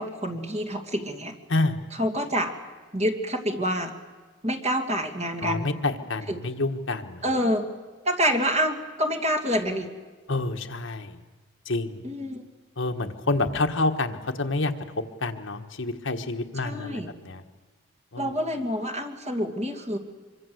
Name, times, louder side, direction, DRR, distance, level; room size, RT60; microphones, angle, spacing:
voice 1, 0.0-1.3 1.9-2.5 2.9-3.9 4.4-5.8 6.3-6.4 7.2-7.7 8.0-9.9 12.0-12.4 16.6-17.1 18.2-20.0, equal, 30° right, 3 dB, 2.5 m, -27 dB
voice 2, 5.4-7.2 10.3-11.2 11.6-12.0 12.8-17.4 18.1-18.3, left 2 dB, 65° left, 5 dB, 1.5 m, -28 dB
25.0 x 24.0 x 8.0 m, 1.3 s
head